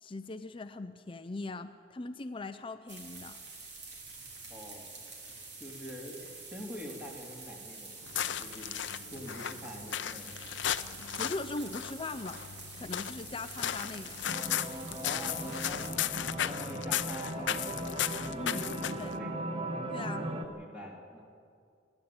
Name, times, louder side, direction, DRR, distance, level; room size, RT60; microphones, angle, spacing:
voice 1, 0.0-3.4 10.9-12.4 12.8-14.2 18.4-18.6 19.0-19.1 19.9-20.3, left 2 dB, 30° left, 10 dB, 0.5 m, -40 dB
sound 1, 2.9-15.9, right 3 dB, 65° right, 3.9 m, -47 dB
voice 2, 4.5-4.9 5.6-8.1 8.4-8.7 9.1-10.4 15.0-17.9 18.3-19.4 20.1-21.2, left 1 dB, 5° right, -1 dB, 3.4 m, -45 dB
sound 2, 8.0-19.2, left 10 dB, 75° left, 0.6 m, -36 dB
sound 3, 14.2-20.4, right 1 dB, 30° right, 1.1 m, -38 dB
27.5 x 11.0 x 8.8 m, 2.3 s
head